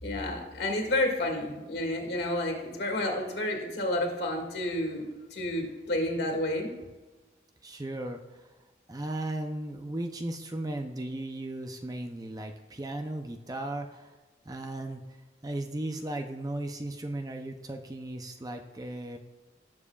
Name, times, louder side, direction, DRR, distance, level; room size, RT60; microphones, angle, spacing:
voice 1, 0.0-5.1 5.3-6.7, left 1 dB, 60° left, 2 dB, 2.1 m, -30 dB
voice 2, 7.6-8.5 8.9-14.2 14.4-15.2 15.4-19.2, right 1 dB, 20° right, 5 dB, 0.6 m, -36 dB
18.0 x 7.3 x 2.4 m, 1.2 s
head